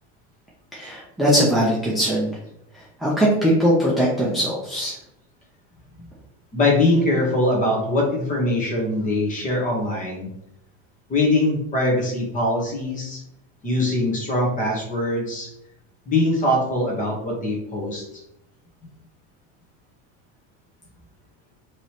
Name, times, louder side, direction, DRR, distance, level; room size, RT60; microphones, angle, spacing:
voice 1, 0.7-2.3 2.7-5.0, equal, ahead, -6 dB, 0.6 m, -21 dB
voice 2, 6.5-10.3 11.1-13.2 13.6-15.5 16.1-18.2, left 1 dB, 25° left, -1 dB, 1.3 m, -22 dB
5.1 x 3.2 x 3.0 m, 0.79 s
cardioid pair, 165°, 34 cm